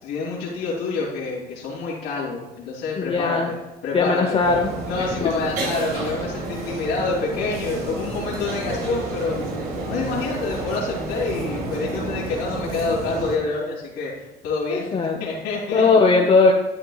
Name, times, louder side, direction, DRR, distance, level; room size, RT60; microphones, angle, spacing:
voice 1, 0.0-3.4 3.8-4.2 4.9-9.4 9.8-15.8 16.2-16.3, left 3 dB, 85° left, -6 dB, 2.8 m, -27 dB
voice 2, 2.9-3.5 3.9-4.7 5.0-5.1 14.7-15.2 15.7-16.5, left 4 dB, 35° left, 2 dB, 0.9 m, -18 dB
sound 1, 4.4-13.4, right 2 dB, 70° right, 2.8 m, -30 dB
11.0 x 9.2 x 2.4 m, 1.0 s
cardioid pair, 110°, 17 cm